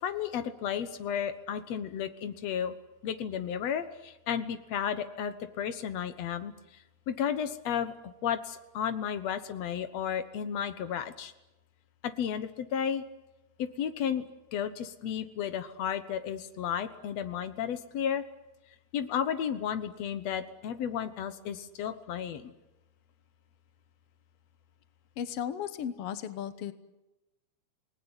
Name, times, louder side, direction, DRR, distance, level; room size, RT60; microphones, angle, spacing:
voice 1, 0.0-2.7 3.0-6.5 7.1-11.3 12.0-13.0 13.6-18.2 18.9-22.5, left 8 dB, 65° left, 10 dB, 1.7 m, -33 dB
voice 2, 25.2-26.7, left 9 dB, 90° left, 11 dB, 1.3 m, -35 dB
27.5 x 19.5 x 9.8 m, 1.0 s
omnidirectional pair, 4.5 m